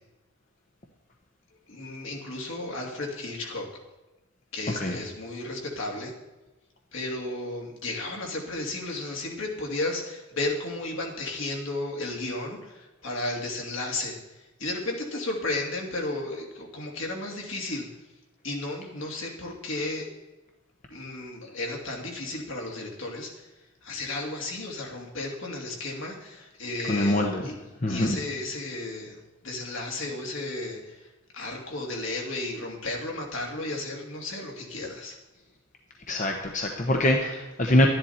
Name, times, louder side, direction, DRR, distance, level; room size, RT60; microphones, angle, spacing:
voice 1, 1.7-3.7 4.5-6.1 6.9-17.9 18.4-20.1 20.9-23.5 23.8-27.6 27.9-29.2 29.4-35.2, left 2 dB, 70° left, 0 dB, 2.7 m, -33 dB
voice 2, 26.9-27.4 27.8-28.2 36.1-37.9, left 1 dB, 35° left, 2 dB, 1.0 m, -24 dB
12.5 x 10.5 x 4.3 m, 1.1 s
head